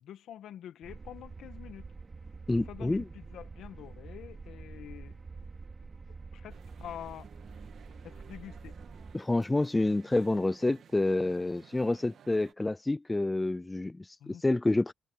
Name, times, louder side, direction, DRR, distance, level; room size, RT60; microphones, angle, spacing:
voice 1, 0.0-1.8 2.6-5.2 6.1-7.3 8.0-8.8 14.2-14.4, left 10 dB, 75° left, 1.9 m, -46 dB
sound 1, 0.8-9.2, right 4 dB, 30° right, 3.1 m, -47 dB
voice 2, 2.5-3.0 9.1-14.9, left 2 dB, 15° left, 0.5 m, -28 dB
sound 2, 6.5-12.5, right 8 dB, 60° right, 2.4 m, -56 dB
cardioid pair, 90°, 0 cm